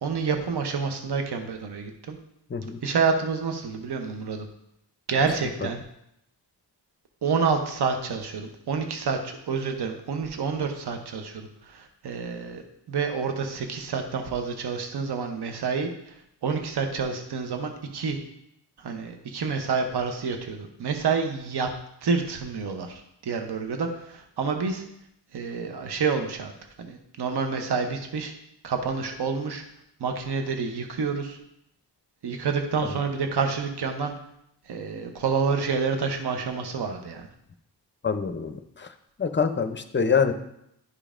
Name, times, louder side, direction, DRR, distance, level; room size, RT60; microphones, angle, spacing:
voice 1, 0.0-2.2 2.8-4.5 5.1-5.8 7.2-16.1 16.4-18.2 18.8-21.7 22.0-24.8 25.3-26.5 26.8-28.3 28.6-29.6 30.0-31.4 32.2-34.1 34.7-37.3, right 5 dB, 65° right, 5 dB, 0.8 m, -28 dB
voice 2, 38.0-38.9 39.2-40.3, left 6 dB, 30° left, 9 dB, 0.5 m, -25 dB
11.0 x 5.1 x 2.5 m, 0.77 s
wide cardioid pair, 120°, 43 cm